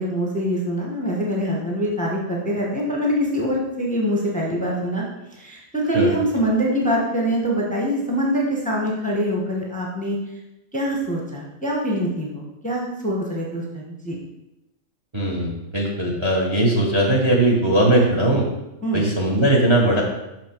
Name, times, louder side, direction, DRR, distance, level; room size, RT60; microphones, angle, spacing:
voice 1, 0.0-5.0 5.3-10.2 10.7-14.2 18.8-19.0, equal, 5° left, -2 dB, 0.9 m, -24 dB
voice 2, 15.1-18.5 18.9-20.0, right 1 dB, 25° right, -1 dB, 1.0 m, -19 dB
6.0 x 5.8 x 4.4 m, 0.96 s
omnidirectional pair, 1.5 m